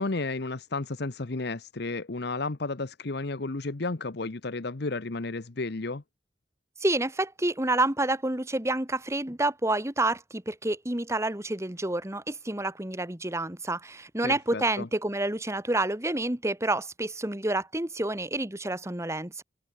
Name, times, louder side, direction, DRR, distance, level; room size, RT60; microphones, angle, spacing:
voice 1, 0.0-6.0 14.2-14.9, left 3 dB, 60° left, 1.0 m, -32 dB
voice 2, 6.8-19.4, right 2 dB, 15° right, 1.6 m, -28 dB
open air
head